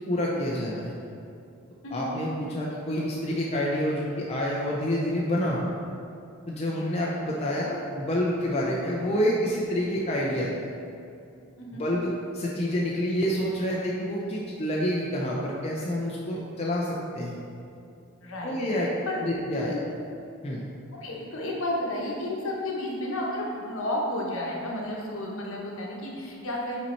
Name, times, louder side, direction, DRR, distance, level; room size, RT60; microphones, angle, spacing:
voice 1, 0.1-0.9 1.9-5.7 6.5-10.5 11.8-17.4 18.4-18.9 19.2-19.8 20.4-20.6, equal, 30° left, -4 dB, 0.5 m, -28 dB
voice 2, 1.8-2.1 6.6-7.1 11.6-11.9 18.2-19.2 19.5-19.8 21.0-26.9, left 1 dB, 65° left, -2 dB, 1.1 m, -32 dB
5.7 x 4.1 x 4.3 m, 2.5 s
head